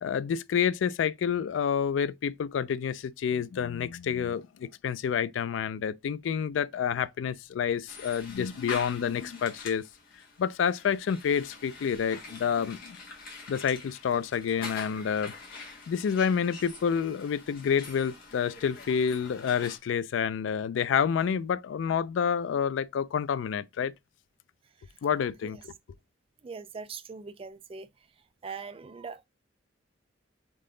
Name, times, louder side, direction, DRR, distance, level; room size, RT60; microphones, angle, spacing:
voice 1, 0.0-9.8 10.4-13.0 13.5-15.3 15.9-23.9 25.0-25.7, left 7 dB, 75° left, 0.3 m, -28 dB
sound 1, 7.9-19.8, left 3 dB, 50° left, 1.6 m, -45 dB
voice 2, 26.4-27.9 28.4-29.2, right 5 dB, 30° right, 0.3 m, -41 dB
3.8 x 3.7 x 3.8 m
head